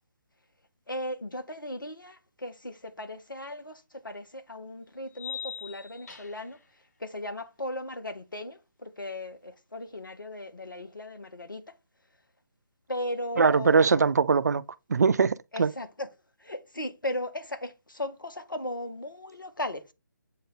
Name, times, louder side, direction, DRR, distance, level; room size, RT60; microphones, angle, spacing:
voice 1, 0.9-6.6 7.0-11.6 12.9-14.0 15.5-16.1 16.4-19.8, left 1 dB, 85° left, 1.5 m, -37 dB
sound 1, 3.5-3.6 5.1-6.6, left 9 dB, 50° left, 1.7 m, -40 dB
voice 2, 13.4-14.6 14.9-15.7, right 5 dB, 55° right, 0.4 m, -22 dB
8.1 x 3.4 x 3.9 m
figure-of-eight pair, 145°, 11 cm